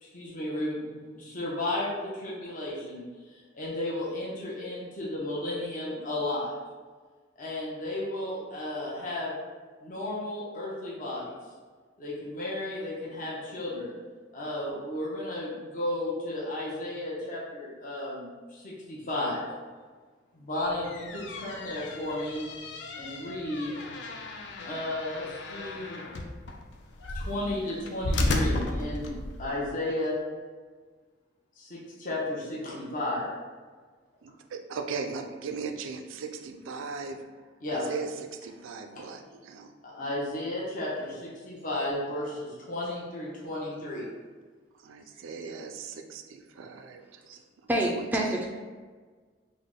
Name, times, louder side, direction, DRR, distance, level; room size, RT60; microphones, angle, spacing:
voice 1, 0.0-6.5 7.4-9.3 9.8-11.4 12.0-14.0 14.3-19.5 20.3-22.5 22.9-23.9 24.6-26.0 27.1-29.1 29.4-30.2 31.6-33.3 37.6-37.8 38.9-39.0 39.8-44.1, left 1 dB, 45° left, -6 dB, 0.7 m, -33 dB
sound 1, 20.7-29.5, left 1 dB, 65° left, 0.4 m, -34 dB
voice 2, 34.2-37.2 37.7-39.7 44.7-47.4 47.9-48.5, right 5 dB, 90° right, 6 dB, 0.4 m, -38 dB
voice 3, 47.7-48.5, right 1 dB, 10° right, -1 dB, 0.3 m, -26 dB
3.6 x 2.1 x 3.6 m, 1.5 s
head